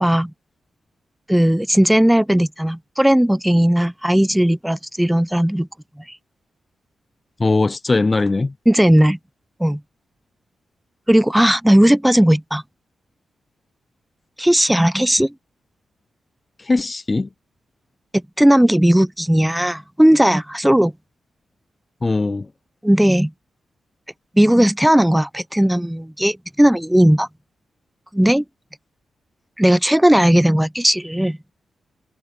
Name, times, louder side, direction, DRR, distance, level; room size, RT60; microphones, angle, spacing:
voice 1, 0.0-0.3 1.3-5.7 8.7-9.2 9.6-9.8 11.1-12.6 14.4-15.3 18.4-20.9 22.8-23.3 24.4-27.3 28.1-28.4 29.6-31.4, equal, 5° right, 0.8 m, -16 dB
voice 2, 7.4-8.5 16.6-17.3 22.0-22.5, left 3 dB, 35° left, 0.5 m, -19 dB
supercardioid pair, 50°, 0 cm